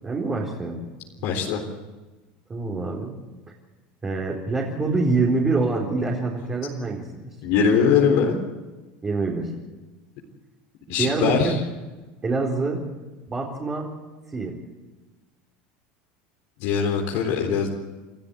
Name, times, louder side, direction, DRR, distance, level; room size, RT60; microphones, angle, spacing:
voice 1, 0.0-0.8 1.2-1.3 2.5-3.1 4.0-7.3 9.0-9.5 11.0-11.5 12.2-12.9 13.3-13.9 14.3-14.5, right 3 dB, 20° right, -3 dB, 4.1 m, -25 dB
voice 2, 1.2-1.6 7.4-8.4 10.9-11.5 16.6-17.7, left 6 dB, 65° left, 1 dB, 3.8 m, -21 dB
28.5 x 13.5 x 8.5 m, 1.2 s
supercardioid pair, 120°, 5 cm